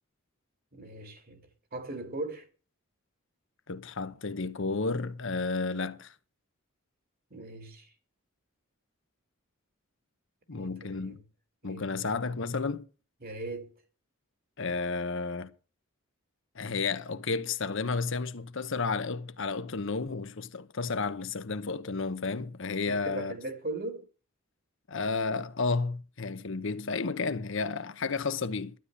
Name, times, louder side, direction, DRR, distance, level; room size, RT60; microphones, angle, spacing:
voice 1, 0.7-1.4 1.7-2.5 7.3-7.9 10.5-11.2 11.6-12.2 13.2-13.7 22.9-24.0, right 2 dB, 45° right, 2.4 m, -39 dB
voice 2, 3.7-6.1 10.5-11.2 11.6-12.8 14.6-15.5 16.5-23.3 24.9-28.7, left 4 dB, 60° left, 0.9 m, -32 dB
12.5 x 9.9 x 6.6 m
head